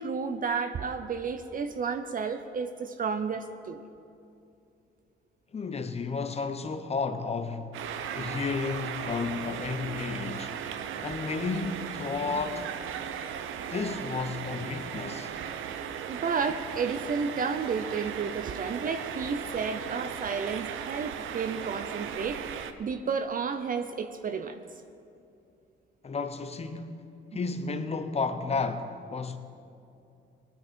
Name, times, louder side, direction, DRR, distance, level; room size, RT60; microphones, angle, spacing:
voice 1, 0.0-3.8 15.9-22.4 22.8-24.6, right 5 dB, 45° right, 0.6 m, -32 dB
voice 2, 5.5-7.8 8.1-10.6 11.0-12.7 13.7-15.3 26.0-27.0 27.3-29.4, left 4 dB, 30° left, 1.0 m, -32 dB
sound 1, 7.7-22.7, right 8 dB, 85° right, 0.7 m, -37 dB
19.0 x 9.5 x 4.5 m
cardioid pair, 90°, 20 cm